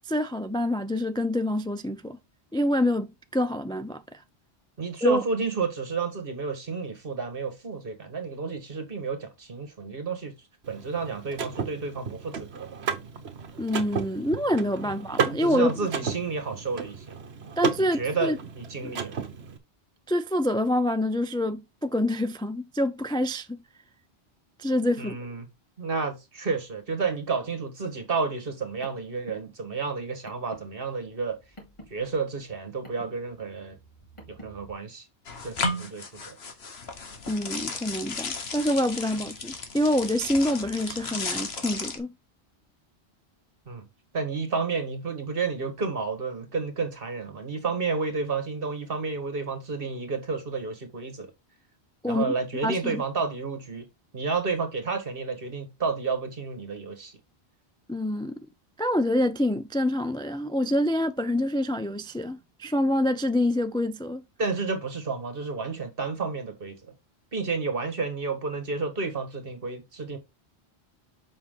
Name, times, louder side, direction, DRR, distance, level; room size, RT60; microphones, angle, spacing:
voice 1, 0.1-2.2 2.5-4.2 5.0-5.2 13.6-15.7 17.6-18.4 18.8-19.0 20.1-23.6 24.6-25.2 37.3-42.1 52.0-52.2 52.6-53.0 57.9-58.3 58.8-64.2, left 1 dB, 5° left, 0.4 m, -26 dB
voice 2, 4.8-10.4 10.7-12.7 15.3-17.0 17.8-19.2 25.0-25.5 25.8-31.4 31.9-33.8 34.3-35.0 35.4-36.4 43.7-43.9 44.1-51.3 52.1-53.9 54.1-57.1 64.4-66.8 67.3-70.2, right 4 dB, 55° right, 1.8 m, -31 dB
Car / Mechanisms, 10.6-19.6, right 6 dB, 75° right, 1.3 m, -34 dB
Car, 28.8-34.7, equal, 25° left, 3.0 m, -51 dB
sound 1, 35.3-42.0, left 3 dB, 70° left, 1.5 m, -34 dB
7.3 x 5.5 x 3.8 m
omnidirectional pair, 1.1 m